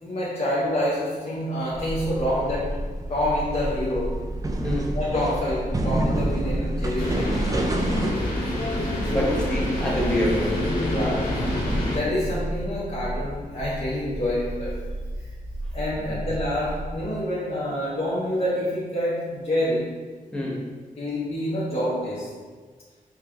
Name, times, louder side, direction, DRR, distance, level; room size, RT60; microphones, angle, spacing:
voice 1, 0.0-4.2 4.9-7.6 9.1-9.4 10.8-15.3 15.7-20.0 21.0-22.4, left 1 dB, 45° left, -8 dB, 0.9 m, -27 dB
sound 1, 1.7-8.1, right 1 dB, 25° right, 0.4 m, -29 dB
sound 2, 1.8-17.1, right 1 dB, 80° right, 1.2 m, -34 dB
voice 2, 4.6-5.0 9.0-10.7 12.1-12.2 16.0-16.2 20.3-20.7, left 1 dB, 5° left, -4 dB, 0.9 m, -27 dB
sound 3, 7.0-12.0, left 1 dB, 75° left, 1.4 m, -27 dB
4.5 x 3.3 x 2.4 m, 1.4 s
wide cardioid pair, 95°, 15 cm